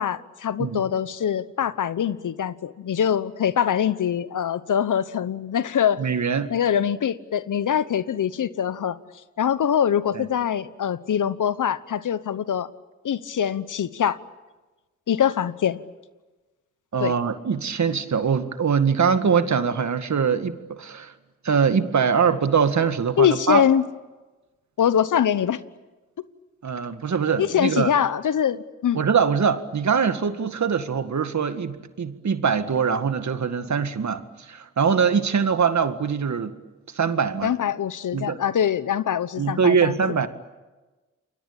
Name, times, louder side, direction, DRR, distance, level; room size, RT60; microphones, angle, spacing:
voice 1, 0.0-6.0 6.5-9.0 9.4-12.7 13.0-14.2 15.1-15.8 17.0-17.1 23.2-23.8 24.8-25.6 27.4-29.0 37.4-40.2, left 9 dB, 70° left, 16 dB, 1.1 m, -23 dB
voice 2, 6.0-6.5 10.1-10.3 16.9-21.1 21.4-23.6 26.6-27.9 29.0-36.6 36.9-37.6 38.1-38.4 39.4-40.3, right 6 dB, 60° right, 10 dB, 2.0 m, -23 dB
28.5 x 22.5 x 8.8 m, 1.2 s
supercardioid pair, 45°, 32 cm